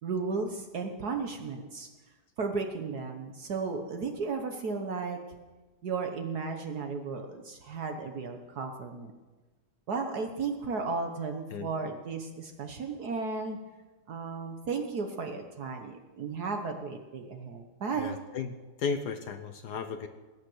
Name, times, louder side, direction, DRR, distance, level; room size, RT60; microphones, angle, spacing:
voice 1, 0.0-1.9 2.4-5.2 5.8-9.1 9.9-13.6 14.1-18.2, right 4 dB, 65° right, 5 dB, 1.6 m, -34 dB
voice 2, 18.0-20.1, left 5 dB, 70° left, 8 dB, 1.4 m, -35 dB
20.0 x 9.1 x 7.9 m, 1.2 s
omnidirectional pair, 1.9 m